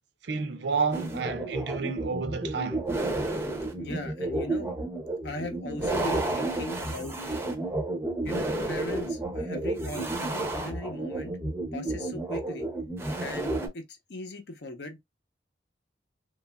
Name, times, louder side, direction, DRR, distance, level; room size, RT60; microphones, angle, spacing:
voice 1, 0.2-2.9, right 5 dB, 75° right, 0.5 m, -30 dB
sound 1, 0.9-13.7, right 2 dB, 15° right, 0.5 m, -31 dB
voice 2, 3.8-4.7 5.2-7.2 8.2-11.3 11.7-12.7 13.2-15.0, left 2 dB, 70° left, 0.7 m, -38 dB
3.1 x 2.3 x 2.2 m
head